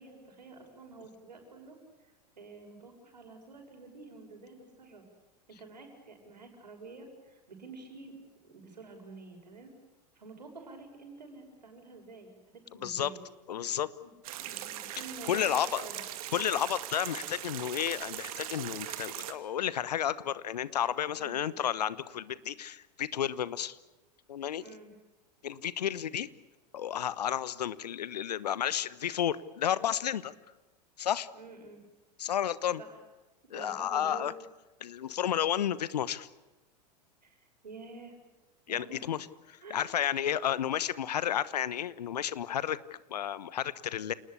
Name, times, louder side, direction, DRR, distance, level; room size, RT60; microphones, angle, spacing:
voice 1, 0.0-1.8 2.4-5.0 5.5-8.1 8.4-9.7 10.1-13.2 14.0-15.4 15.8-16.0 21.1-21.4 24.6-24.9 31.3-31.8 32.8-33.0 33.5-34.3 37.2-38.1 38.7-39.1 39.6-40.0, right 3 dB, 80° right, 4 dB, 6.7 m, -49 dB
voice 2, 12.8-13.1 13.5-13.9 15.3-15.8 16.3-23.8 24.3-24.6 25.4-26.3 26.7-30.3 31.0-31.3 32.2-32.8 33.5-34.3 34.8-36.3 38.7-42.8 43.1-44.1, left 10 dB, 70° left, 18 dB, 1.1 m, -32 dB
sound 1, 14.2-19.3, right 12 dB, 60° right, 2.4 m, -40 dB
28.5 x 19.5 x 8.4 m, 1.1 s
figure-of-eight pair, 90°, 21 cm